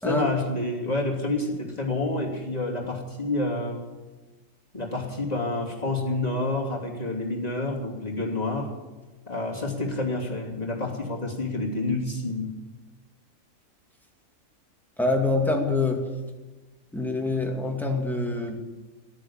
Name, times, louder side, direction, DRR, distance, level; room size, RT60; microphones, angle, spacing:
voice 1, 0.0-3.8 4.7-8.8 9.3-12.5, left 2 dB, 30° left, -1 dB, 3.0 m, -28 dB
voice 2, 15.0-16.0 16.9-18.6, left 2 dB, ahead, 0 dB, 2.4 m, -25 dB
13.5 x 11.0 x 8.9 m, 1.2 s
omnidirectional pair, 1.5 m